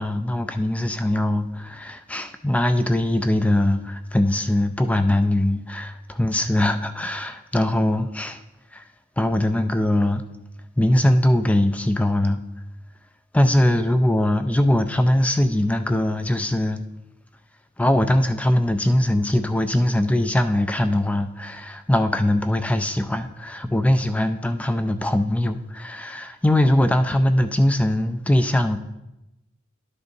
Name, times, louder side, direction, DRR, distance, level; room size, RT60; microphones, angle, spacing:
voice 1, 0.0-8.4 8.7-8.8 9.2-10.2 10.8-12.4 13.3-16.8 17.8-28.8, left 1 dB, 5° left, 0.3 m, -21 dB
12.0 x 6.6 x 2.7 m
head